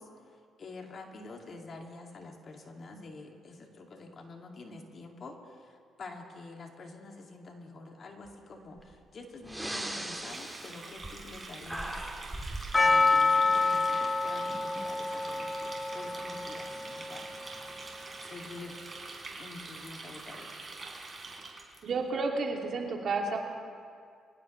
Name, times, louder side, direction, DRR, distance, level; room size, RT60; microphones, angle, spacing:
voice 1, 0.0-12.1 12.7-17.3 17.6-17.8 18.2-18.9 19.4-20.6, left 3 dB, 50° left, 2 dB, 2.2 m, -47 dB
Breathing, 8.8-8.9 9.4-11.4 11.6-12.7, right 1 dB, 10° right, 1.8 m, -38 dB
Water tap faucet, 10.2-21.8, right 3 dB, 35° right, 3.6 m, -45 dB
Percussion, 12.7-17.7, left 3 dB, 25° left, 0.6 m, -28 dB
voice 2, 21.8-23.4, right 3 dB, 60° right, 0 dB, 2.5 m, -31 dB
25.5 x 16.5 x 3.2 m, 2.2 s
cardioid pair, 80°, 0 cm